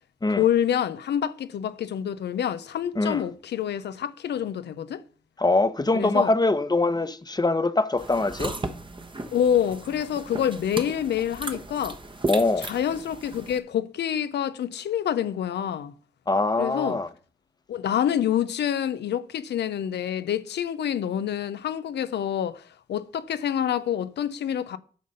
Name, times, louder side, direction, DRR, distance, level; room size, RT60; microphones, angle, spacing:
voice 1, 0.4-5.0 5.9-6.3 9.3-12.0 12.6-15.9 16.6-17.0 17.7-22.6 22.9-24.8, left 9 dB, 80° left, 0.6 m, -27 dB
voice 2, 5.4-8.5 12.3-12.7 16.3-17.1, left 2 dB, 25° left, 0.9 m, -23 dB
sound 1, 8.0-13.6, right 2 dB, 30° right, 1.1 m, -35 dB
9.3 x 3.9 x 6.5 m
supercardioid pair, 45°, 17 cm